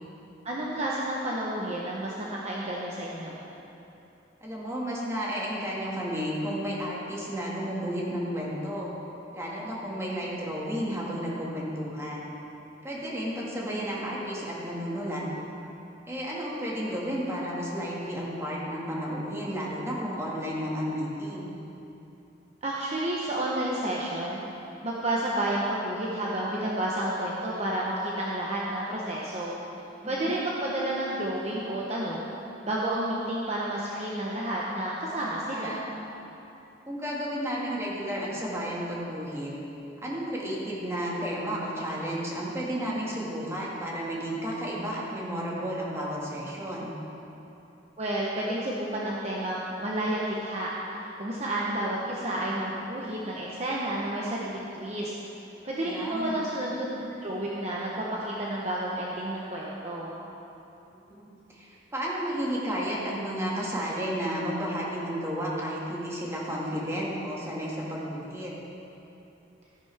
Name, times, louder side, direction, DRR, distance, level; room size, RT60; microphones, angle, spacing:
voice 1, 0.4-3.4 22.6-24.4 24.8-29.6 30.0-32.3 32.6-35.8 48.0-55.1 55.6-60.2, right 1 dB, 35° right, -5 dB, 1.0 m, -31 dB
voice 2, 4.4-8.9 9.3-12.3 12.8-15.2 16.1-21.5 30.0-30.3 35.5-35.8 36.9-39.5 40.0-46.9 55.8-56.5 60.9-68.5, equal, 15° right, -5 dB, 1.9 m, -32 dB
14.0 x 10.5 x 3.5 m, 3.0 s
head